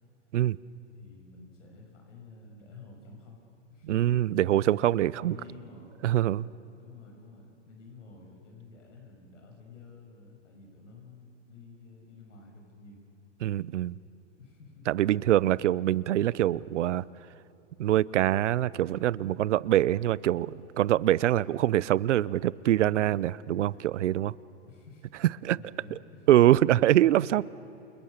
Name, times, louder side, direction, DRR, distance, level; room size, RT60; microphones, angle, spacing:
voice 1, 0.9-3.4 3.7-4.2 5.2-5.9 6.8-13.0 14.4-14.9 15.7-15.9 24.7-25.1 25.4-26.5, left 4 dB, 85° left, 1 dB, 6.4 m, -50 dB
voice 2, 3.9-5.4 6.0-6.5 13.4-14.0 14.9-17.0 17.8-24.3 25.4-25.6 26.3-27.4, right 13 dB, 75° right, 21 dB, 0.7 m, -24 dB
29.0 x 28.5 x 6.6 m, 3.0 s
hypercardioid pair, 145°, 36 cm